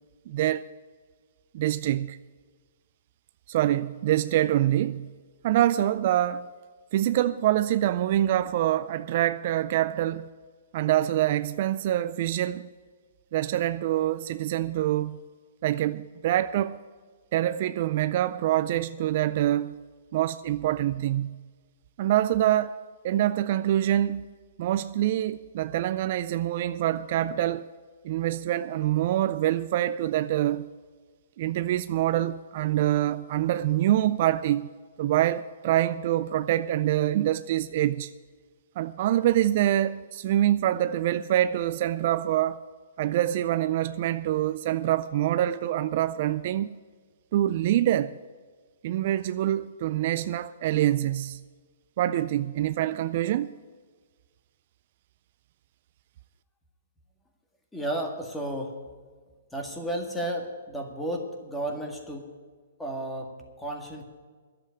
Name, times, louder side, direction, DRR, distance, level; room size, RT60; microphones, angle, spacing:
voice 1, 0.3-0.6 1.5-2.2 3.5-5.1 5.4-6.5 6.9-10.3 10.7-12.7 13.3-15.2 15.6-16.8 17.3-19.8 20.1-21.4 22.0-24.3 24.6-27.7 28.0-30.7 31.4-34.7 35.0-38.1 38.8-42.6 43.0-46.8 47.3-48.2 48.8-51.4 52.0-53.5, right 13 dB, 50° right, 0.4 m, -25 dB
voice 2, 57.7-58.9 59.5-62.3 62.8-64.0, right 1 dB, 5° left, 1.9 m, -33 dB
11.0 x 7.7 x 9.8 m
hypercardioid pair, 140°, 0 cm